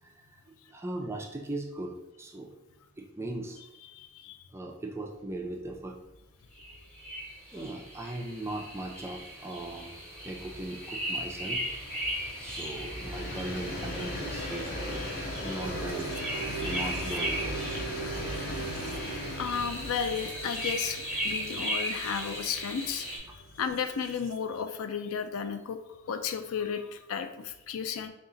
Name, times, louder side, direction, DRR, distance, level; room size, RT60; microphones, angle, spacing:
voice 1, 0.0-2.5 3.0-3.6 4.5-6.0 7.5-11.6 12.4-15.1 15.4-16.2 16.6-17.8, right 2 dB, 10° right, 1 dB, 0.3 m, -39 dB
voice 2, 3.9-4.4 19.4-23.2 23.6-28.1, left 7 dB, 75° left, 9 dB, 0.4 m, -33 dB
Train, 5.6-5.8 6.1-6.2 6.5-23.9, left 1 dB, 45° left, 0.8 m, -39 dB
sound 1, 6.6-23.2, equal, 5° left, 1.0 m, -37 dB
sound 2, 15.6-24.4, right 8 dB, 85° right, 0.4 m, -43 dB
3.8 x 2.4 x 3.8 m, 0.94 s
head